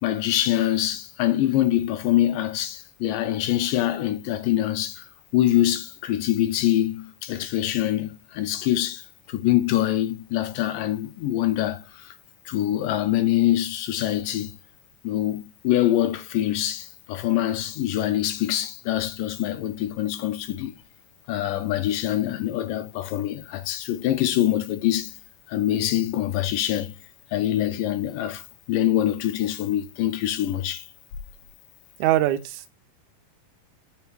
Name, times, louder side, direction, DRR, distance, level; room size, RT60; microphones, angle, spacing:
voice 1, 0.0-5.0 5.3-12.1 12.5-14.5 15.0-20.7 21.3-25.1 25.5-26.9 27.3-28.4 28.7-30.9, left 13 dB, 90° left, 2.5 m, -24 dB
voice 2, 32.0-32.7, right 14 dB, 75° right, 1.9 m, -22 dB
5.5 x 4.6 x 4.6 m
omnidirectional pair, 3.8 m